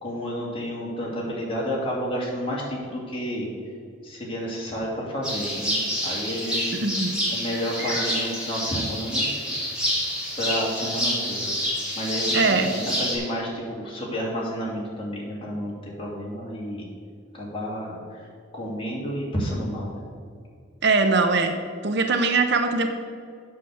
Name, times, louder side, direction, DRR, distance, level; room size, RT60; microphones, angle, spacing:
voice 1, 0.0-3.5 4.0-6.8 7.3-9.3 10.4-11.5 12.0-16.9 17.3-18.3 18.5-20.0, equal, 25° left, -4 dB, 2.4 m, -30 dB
sound 1, 5.2-13.1, equal, 5° right, 2.6 m, -28 dB
voice 2, 6.7-7.1 12.3-12.7 20.8-21.6 21.8-22.9, right 3 dB, 55° right, 7 dB, 0.7 m, -21 dB
8.4 x 6.4 x 6.9 m, 2.2 s
head